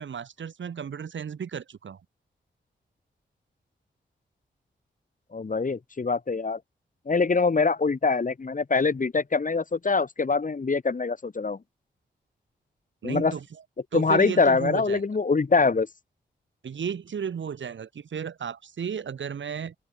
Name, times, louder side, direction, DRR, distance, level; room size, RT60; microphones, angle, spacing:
voice 1, 0.0-2.0 13.0-13.4 13.9-15.1 16.6-19.7, right 7 dB, 75° right, 3.7 m, -34 dB
voice 2, 5.3-6.6 7.1-11.6 13.0-13.3 13.9-15.9, left 4 dB, 45° left, 2.2 m, -24 dB
open air
cardioid pair, 55°, 19 cm